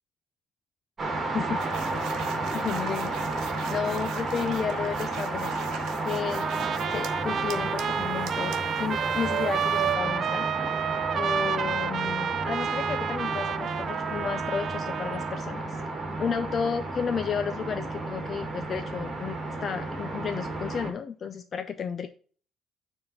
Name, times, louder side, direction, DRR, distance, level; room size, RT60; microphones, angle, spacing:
sound 1, 1.0-20.9, right 2 dB, 30° right, 1.9 m, -32 dB
sound 2, 1.6-7.1 7.5-10.0, right 10 dB, 80° right, 0.9 m, -39 dB
voice 1, 2.5-3.1 3.7-5.6 6.1-6.5 6.9-10.5 11.1-15.8 16.2-22.1, left 6 dB, 35° left, 8 dB, 0.5 m, -32 dB
Trumpet, 6.3-15.4, right 8 dB, 45° right, 0.3 m, -31 dB
9.2 x 3.6 x 5.5 m, 0.43 s
cardioid pair, 145°, 0 cm